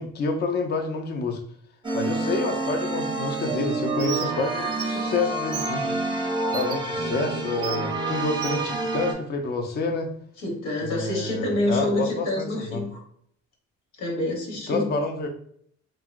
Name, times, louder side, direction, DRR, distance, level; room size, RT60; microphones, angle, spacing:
voice 1, 0.0-1.4 1.9-5.8 6.5-10.1 10.8-12.8 14.7-15.3, left 3 dB, 35° left, 4 dB, 0.4 m, -28 dB
sound 1, 1.8-9.1, right 3 dB, 15° right, 0.6 m, -28 dB
Bird, 4.0-4.3 4.7-4.9 5.5-5.7 6.5-6.8 7.6-7.8 8.4-8.6, right 8 dB, 80° right, 0.5 m, -33 dB
voice 2, 10.4-13.0 14.0-14.9, left 1 dB, 90° left, 0 dB, 1.1 m, -27 dB
2.9 x 2.6 x 2.4 m, 0.64 s
cardioid pair, 90°, 30 cm